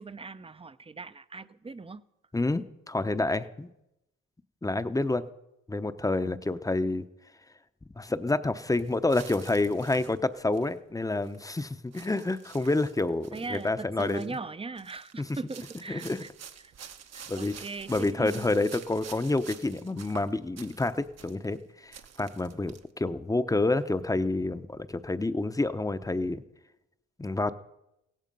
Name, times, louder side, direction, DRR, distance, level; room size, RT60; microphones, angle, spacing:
voice 1, 0.0-2.0 13.3-16.3 16.6-16.7 17.1-18.5, right 4 dB, 20° right, 14 dB, 0.6 m, -39 dB
voice 2, 2.3-3.7 4.6-5.2 5.7-7.0 8.0-14.4 15.9-16.2 17.3-26.4 27.2-27.5, left 2 dB, 10° left, 11 dB, 0.8 m, -28 dB
sound 1, 8.7-10.7 11.1-11.6 11.9-13.7 14.0-14.4 14.7-21.6 21.9-22.8, right 8 dB, 55° right, 1.2 m, -49 dB
16.5 x 15.0 x 5.4 m, 0.88 s
cardioid pair, 90°, 30 cm